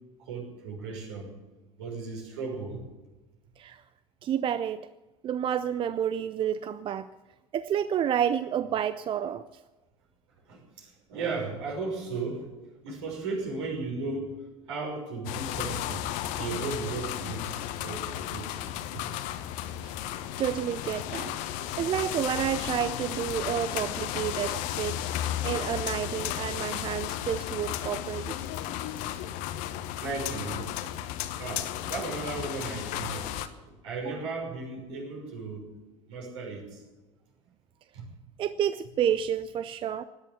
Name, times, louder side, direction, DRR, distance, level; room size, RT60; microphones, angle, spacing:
voice 1, 0.2-1.3 1.8-2.8 10.5-12.5 12.8-14.3 14.7-17.5 17.8-19.1 30.0-30.7 31.4-33.4 33.8-35.7 36.1-36.8 37.9-38.1, right 4 dB, 65° right, 0 dB, 6.0 m, -35 dB
voice 2, 4.2-4.9 5.2-7.1 7.5-9.6 19.8-20.1 20.4-21.3 21.8-28.3 38.4-40.0, right 9 dB, 30° right, 14 dB, 0.5 m, -30 dB
sound 1, 15.2-33.5, left 12 dB, 50° left, 1.2 m, -34 dB
17.5 x 11.0 x 7.1 m, 1.2 s
figure-of-eight pair, 70°, 16 cm